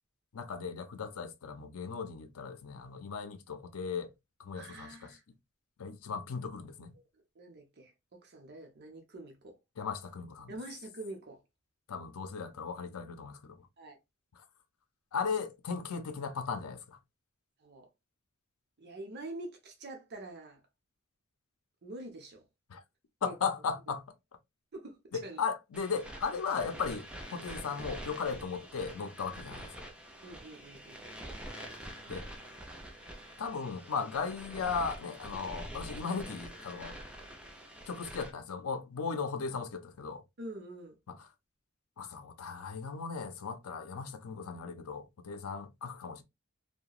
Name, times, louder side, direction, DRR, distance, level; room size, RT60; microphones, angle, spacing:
voice 1, 0.3-4.1 4.4-5.1 5.8-6.9 9.8-10.5 11.9-13.7 14.4-14.5 15.1-17.0 22.7-22.8 23.2-24.1 25.1-29.9 32.1-32.3 33.4-37.0 37.9-40.2 41.1-41.2 42.0-46.2, left 5 dB, 90° left, 0.5 m, -37 dB
voice 2, 4.5-5.2 7.3-9.6 10.5-11.4 13.8-14.0 17.6-17.9 18.8-20.6 21.8-22.4 23.2-23.3 24.7-25.4 30.2-31.0 40.4-41.0, right 2 dB, 50° right, 0.7 m, -46 dB
Static interference, 25.7-38.3, right 1 dB, 5° right, 0.5 m, -46 dB
2.8 x 2.1 x 2.3 m
head